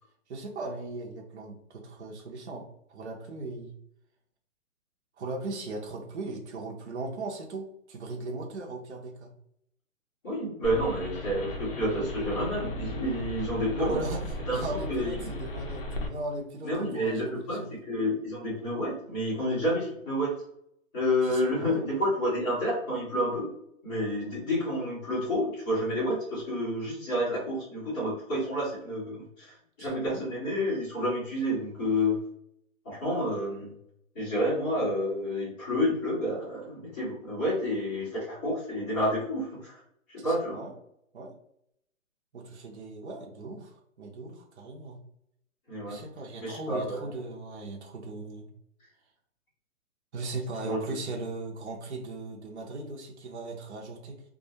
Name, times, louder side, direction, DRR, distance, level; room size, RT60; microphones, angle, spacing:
voice 1, 0.3-3.7 5.2-9.3 13.8-17.8 21.2-21.8 29.8-30.3 40.2-40.7 41.1-41.3 42.3-45.0 45.9-48.5 50.1-54.2, right 2 dB, 55° right, 0 dB, 0.7 m, -38 dB
voice 2, 10.2-14.0 14.5-15.3 16.6-20.3 20.9-23.5 23.8-32.2 32.8-33.7 34.1-39.8 40.1-40.6 45.7-46.0 46.4-47.0 50.6-50.9, equal, 15° left, -10 dB, 0.8 m, -29 dB
sound 1, 10.6-16.1, left 1 dB, 45° left, 0.5 m, -36 dB
2.3 x 2.1 x 2.8 m, 0.74 s
hypercardioid pair, 160°, 40 cm